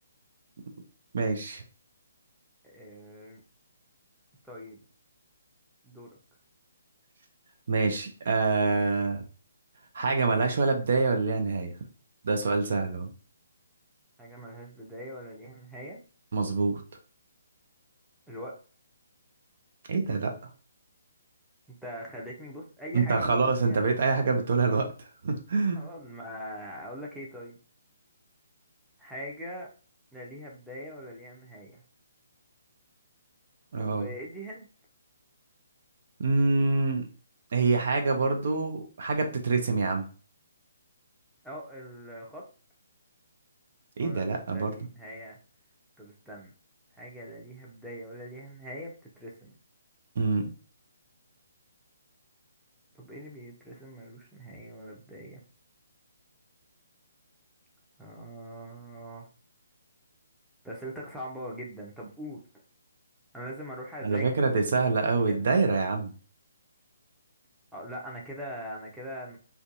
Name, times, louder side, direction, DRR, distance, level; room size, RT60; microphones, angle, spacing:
voice 1, 1.1-1.6 7.7-9.2 9.9-11.7 12.2-13.1 16.3-16.8 19.9-20.3 22.9-25.9 33.7-34.1 36.2-37.1 37.5-40.1 44.0-44.7 50.2-50.5 64.0-66.1, right 3 dB, 55° right, 5 dB, 0.5 m, -26 dB
voice 2, 2.6-3.4 4.4-4.8 5.8-6.2 14.2-16.0 18.3-18.6 21.8-24.0 25.8-27.6 29.0-29.7 30.1-31.8 33.8-34.7 41.4-42.5 44.0-45.4 46.0-46.5 46.9-49.5 53.0-55.4 58.0-59.3 60.6-62.4 63.3-65.4 67.7-69.4, equal, ahead, -4 dB, 0.6 m, -42 dB
2.5 x 2.2 x 2.5 m, 0.37 s
figure-of-eight pair, 140°, 0 cm